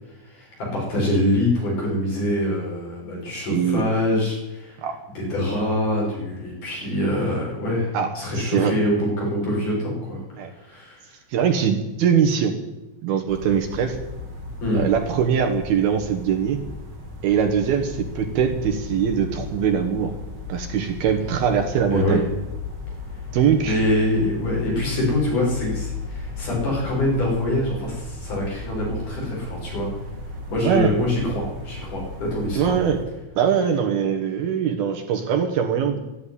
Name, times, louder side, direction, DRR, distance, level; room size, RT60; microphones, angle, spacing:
voice 1, 0.3-4.8 5.2-10.2 10.5-11.0 14.6-14.8 21.9-22.2 23.6-29.9 30.5-32.8, left 1 dB, 40° left, -3 dB, 7.1 m, -24 dB
voice 2, 3.5-3.8 4.8-5.0 7.9-8.7 10.4-10.5 11.3-12.5 13.0-14.0 14.7-16.6 17.2-20.2 20.5-22.2 23.3-23.8 30.6-30.9 32.6-33.0 33.4-36.0, right 7 dB, 65° right, 4 dB, 2.6 m, -22 dB
sound 1, 13.3-33.1, left 3 dB, 25° right, 2.7 m, -35 dB
13.0 x 11.0 x 9.9 m, 1.0 s
omnidirectional pair, 5.6 m